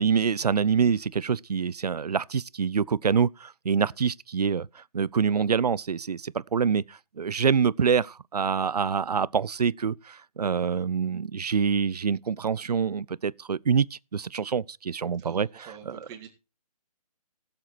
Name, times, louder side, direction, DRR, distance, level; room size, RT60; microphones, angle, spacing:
voice 1, 0.0-16.0, right 6 dB, 85° right, 0.6 m, -26 dB
voice 2, 15.2-16.3, right 8 dB, 20° right, 2.6 m, -46 dB
16.5 x 7.6 x 4.4 m
hypercardioid pair, 150°, 20 cm